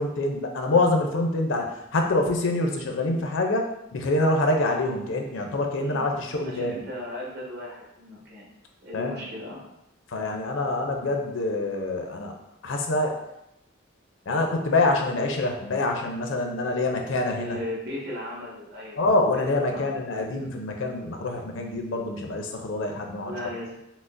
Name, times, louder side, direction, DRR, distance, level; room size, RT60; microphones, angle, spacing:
voice 1, 0.0-6.8 8.9-9.2 10.1-12.4 12.6-13.2 14.3-17.6 19.0-23.3, left 2 dB, 80° left, 3 dB, 0.6 m, -26 dB
voice 2, 5.7-6.2 6.4-8.5 8.8-9.6 17.3-19.1 19.4-19.9 23.2-23.8, left 1 dB, 55° right, -3 dB, 1.2 m, -37 dB
5.9 x 2.0 x 2.5 m, 0.86 s
head